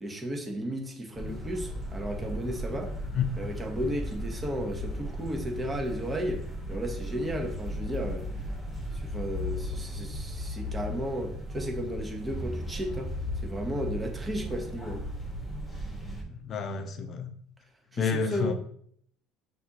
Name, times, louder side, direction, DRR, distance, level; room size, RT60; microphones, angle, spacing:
voice 1, 0.0-2.9 3.4-6.4 6.7-8.2 8.9-13.1 13.4-15.1 17.9-18.5, equal, 20° right, 2 dB, 1.1 m, -34 dB
sound 1, 1.1-16.2, equal, 5° left, 1.5 m, -36 dB
voice 2, 16.3-17.3 18.0-18.5, left 6 dB, 45° left, 7 dB, 0.7 m, -29 dB
5.8 x 2.7 x 3.0 m, 0.63 s
hypercardioid pair, 80°, 0 cm